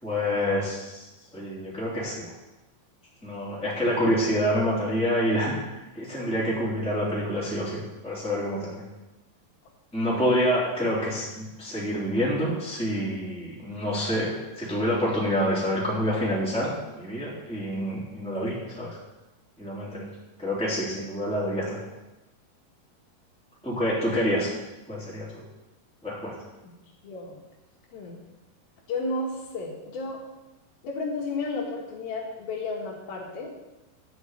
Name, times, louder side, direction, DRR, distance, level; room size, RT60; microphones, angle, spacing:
voice 1, 0.0-1.1 1.3-2.3 3.2-8.8 9.9-19.0 19.6-20.1 20.4-21.8 23.6-24.5 24.9-25.3 26.0-26.3, equal, ahead, -6 dB, 3.0 m, -27 dB
voice 2, 27.0-27.4 27.9-28.2 28.9-30.2 30.8-33.5, left 3 dB, 70° left, -2 dB, 3.4 m, -32 dB
13.0 x 5.3 x 8.3 m, 1.0 s
omnidirectional pair, 4.6 m